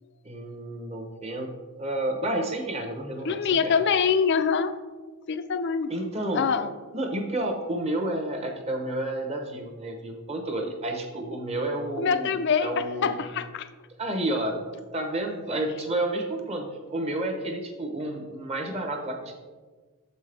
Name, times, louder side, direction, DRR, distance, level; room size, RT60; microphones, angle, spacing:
voice 1, 0.2-1.5 1.8-3.8 5.9-6.4 6.9-12.3 12.6-13.2 14.0-19.4, right 1 dB, 30° right, 3 dB, 0.8 m, -30 dB
voice 2, 3.3-4.7 5.3-5.9 6.3-6.7 12.0-13.7, left 6 dB, 50° left, 10 dB, 0.4 m, -24 dB
7.2 x 5.4 x 3.3 m, 1.4 s
head